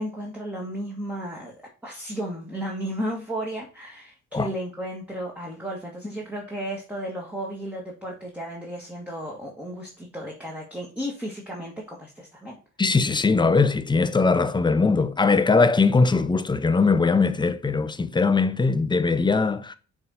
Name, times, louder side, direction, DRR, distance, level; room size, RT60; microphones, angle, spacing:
voice 1, 0.0-1.5 1.8-12.6, equal, 5° right, 1.7 m, -34 dB
voice 2, 12.8-19.7, left 4 dB, 15° left, 0.6 m, -21 dB
6.5 x 3.7 x 4.0 m
cardioid pair, 90°, 30 cm